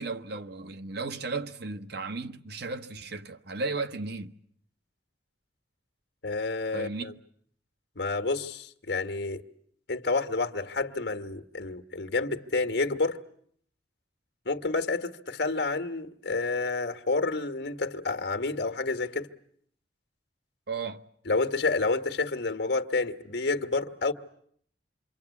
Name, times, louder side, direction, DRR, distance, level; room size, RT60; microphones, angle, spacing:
voice 1, 0.0-4.3 6.7-7.2 20.7-21.0, right 3 dB, 65° right, 1.1 m, -35 dB
voice 2, 6.2-7.1 7.9-9.4 9.9-13.2 14.4-19.3 21.2-24.1, left 3 dB, 70° left, 1.5 m, -29 dB
27.0 x 24.0 x 8.4 m
head